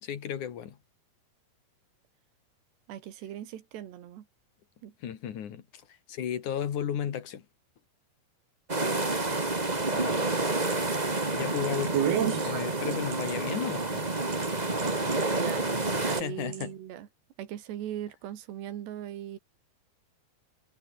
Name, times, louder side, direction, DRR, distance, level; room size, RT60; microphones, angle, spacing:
voice 1, 0.0-0.8 5.0-5.8 6.1-7.5 9.9-10.5 11.0-12.0 12.4-14.1 16.0-16.7, left 9 dB, 55° left, 3.1 m, -34 dB
voice 2, 2.9-4.3 4.8-4.9 15.3-15.7 16.0-17.1 17.4-19.4, right 11 dB, 85° right, 4.3 m, -39 dB
sound 1, 8.7-16.2, right 2 dB, 20° right, 1.1 m, -29 dB
sound 2, 10.3-14.5 14.8-15.3 15.8-16.2 16.5-16.7, right 9 dB, 70° right, 4.6 m, -32 dB
omnidirectional pair, 4.8 m